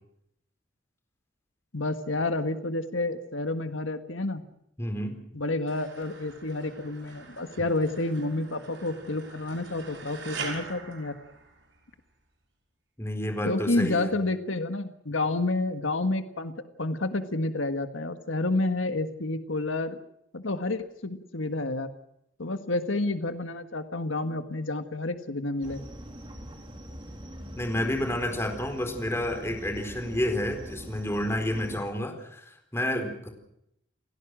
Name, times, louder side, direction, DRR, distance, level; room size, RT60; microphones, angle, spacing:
voice 1, 1.7-4.4 5.3-11.1 13.4-16.5 16.8-20.0 20.3-21.9 22.4-25.8, left 2 dB, 90° left, 9 dB, 1.6 m, -29 dB
voice 2, 4.8-5.2 13.0-14.1 27.6-33.3, left 1 dB, 15° left, 5 dB, 4.1 m, -30 dB
sound 1, 5.7-12.0, right 4 dB, 75° right, 6.1 m, -43 dB
sound 2, 25.6-31.8, equal, 25° right, 3.4 m, -42 dB
29.5 x 16.5 x 6.2 m, 0.77 s
head